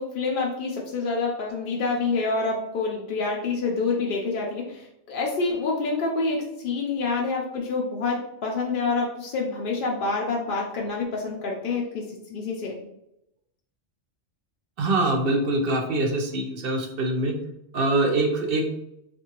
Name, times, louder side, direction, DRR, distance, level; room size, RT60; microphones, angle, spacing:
voice 1, 0.0-12.8, left 3 dB, 55° left, -2 dB, 0.6 m, -27 dB
voice 2, 14.8-17.3 17.7-18.7, right 2 dB, 60° right, 2 dB, 0.7 m, -24 dB
3.5 x 2.6 x 2.9 m, 0.82 s
omnidirectional pair, 1.3 m